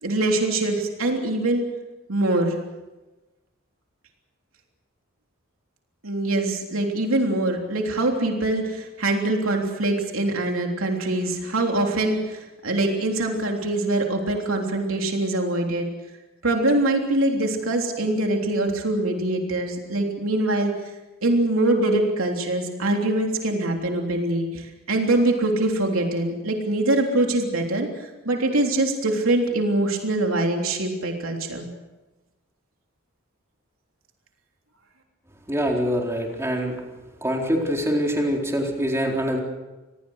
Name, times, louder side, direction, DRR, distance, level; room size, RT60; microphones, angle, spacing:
voice 1, 0.0-1.6 2.1-2.6 6.0-15.9 16.4-20.7 21.2-27.9 28.2-31.7, right 2 dB, 75° right, 2 dB, 3.4 m, -23 dB
voice 2, 35.5-36.7 37.2-39.4, equal, 15° right, 0 dB, 4.1 m, -24 dB
27.0 x 20.5 x 6.5 m, 1.1 s
head